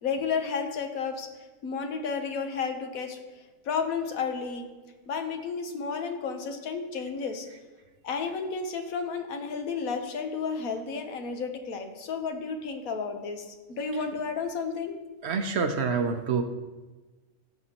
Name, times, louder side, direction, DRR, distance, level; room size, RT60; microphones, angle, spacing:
voice 1, 0.0-1.3 1.6-3.2 3.6-4.7 5.1-7.5 8.0-14.9, left 5 dB, 85° left, 5 dB, 1.3 m, -32 dB
voice 2, 15.2-16.4, right 5 dB, 60° right, 7 dB, 0.8 m, -27 dB
13.5 x 6.2 x 2.9 m, 1.2 s
omnidirectional pair, 1.4 m